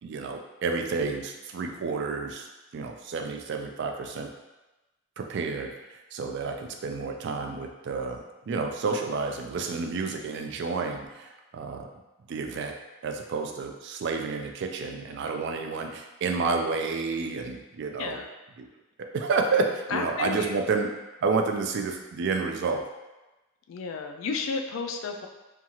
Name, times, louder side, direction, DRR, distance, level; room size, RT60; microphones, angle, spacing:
voice 1, 0.0-2.5 2.7-4.3 5.2-11.9 12.3-12.8 13.0-18.2 18.6-18.7 19.1-20.9 21.2-22.8, right 4 dB, 55° right, 4 dB, 0.3 m, -30 dB
voice 2, 18.0-18.3 19.9-20.6 23.7-25.3, left 4 dB, 65° left, 5 dB, 0.3 m, -32 dB
2.8 x 2.3 x 2.8 m, 1.1 s
head